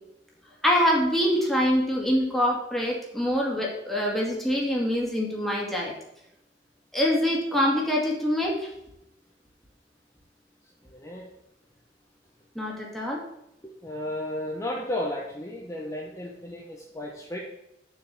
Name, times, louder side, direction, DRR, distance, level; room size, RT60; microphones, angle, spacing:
voice 1, 0.6-5.9 6.9-8.6 12.6-13.2, equal, ahead, -3 dB, 2.3 m, -25 dB
voice 2, 10.8-11.3 13.6-17.4, left 1 dB, 15° left, -3 dB, 1.2 m, -34 dB
7.4 x 5.8 x 6.5 m, 0.85 s
head